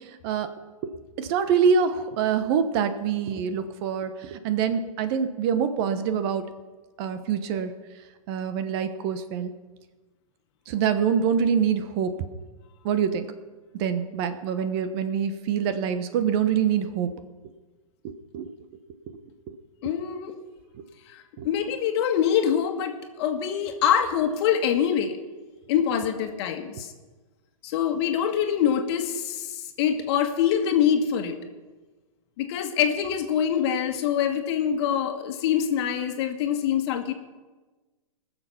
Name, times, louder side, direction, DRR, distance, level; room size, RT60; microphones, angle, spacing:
voice 1, 0.1-0.5 1.2-6.4 7.0-7.7 8.3-9.5 10.7-12.1 12.8-13.3 13.8-17.1 18.0-18.5 21.4-21.5, right 7 dB, 45° right, 10 dB, 1.2 m, -25 dB
voice 2, 19.8-20.3 21.1-25.2 25.7-26.9 27.6-31.4 32.4-37.1, left 8 dB, 45° left, 6 dB, 1.7 m, -25 dB
20.5 x 7.1 x 5.8 m, 1.2 s
hypercardioid pair, 120°, 18 cm